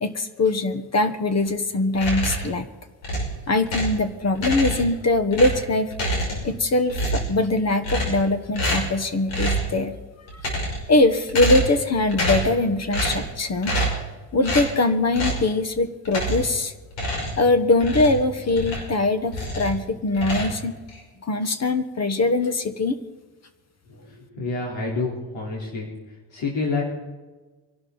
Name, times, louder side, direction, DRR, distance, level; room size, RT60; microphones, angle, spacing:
voice 1, 0.0-2.6 3.5-5.9 6.4-10.0 10.9-13.7 14.3-16.7 17.4-20.7 21.2-23.0, left 2 dB, 35° left, 10 dB, 1.3 m, -22 dB
sound 1, 1.9-2.6 3.0-4.0 4.4-5.0 5.3-6.6 6.9-7.4 7.8-8.3 8.5-9.0 9.3-9.7 10.3-10.9 11.3-11.8 12.1-12.6 12.9-13.3 13.6-14.1 14.4-14.7 15.1-15.5 16.1-16.6 16.9-19.0 19.3-19.8 20.1-21.0, right 1 dB, 85° left, 5.7 m, -27 dB
voice 2, 24.1-25.9 26.3-26.8, left 3 dB, 70° left, -3 dB, 3.9 m, -28 dB
24.5 x 12.0 x 4.0 m, 1.3 s
cardioid pair, 130°, 46 cm